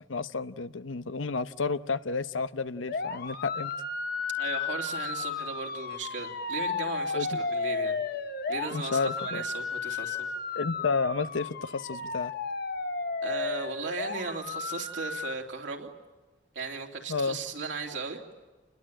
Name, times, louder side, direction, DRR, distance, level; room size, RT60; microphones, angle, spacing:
voice 1, 0.1-3.7 7.1-7.3 8.7-9.4 10.5-12.3 17.1-17.4, left 4 dB, 90° left, 0.8 m, -31 dB
sound 1, 2.9-15.3, left 4 dB, 55° left, 1.3 m, -33 dB
voice 2, 4.4-8.0 8.5-10.3 13.2-15.9 16.5-18.2, right 4 dB, 70° right, 3.2 m, -36 dB
28.5 x 21.5 x 9.0 m
head